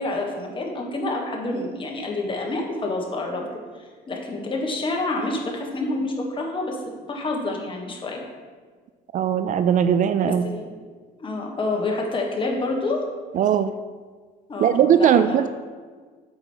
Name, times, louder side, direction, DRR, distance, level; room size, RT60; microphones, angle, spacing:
voice 1, 0.0-3.6 4.1-8.2 10.2-10.8 11.2-13.0 14.5-15.5, left 2 dB, 30° left, 1 dB, 1.4 m, -28 dB
voice 2, 9.1-10.4 13.3-13.7 14.6-15.5, right 8 dB, 50° right, 11 dB, 0.4 m, -19 dB
8.0 x 5.0 x 4.5 m, 1.5 s
cardioid pair, 110°, 17 cm